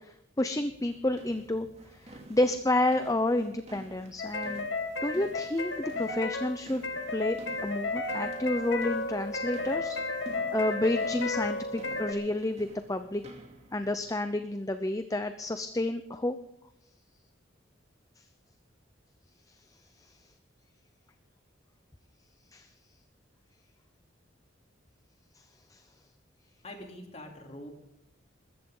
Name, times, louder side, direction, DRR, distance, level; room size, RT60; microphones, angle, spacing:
voice 1, 0.0-1.7 1.9-4.7 5.0-6.8 7.1-10.0 10.5-13.2 13.7-16.4 20.0-20.1 22.5-22.7 25.7-25.8, left 1 dB, 15° left, 9 dB, 0.6 m, -30 dB
sound 1, 0.7-14.1, right 1 dB, 35° right, 2.7 m, -51 dB
sound 2, 4.2-12.1, left 3 dB, 70° left, 1.7 m, -33 dB
voice 2, 26.6-27.7, left 1 dB, 35° left, 2 dB, 3.1 m, -44 dB
20.5 x 14.5 x 3.8 m, 0.85 s
head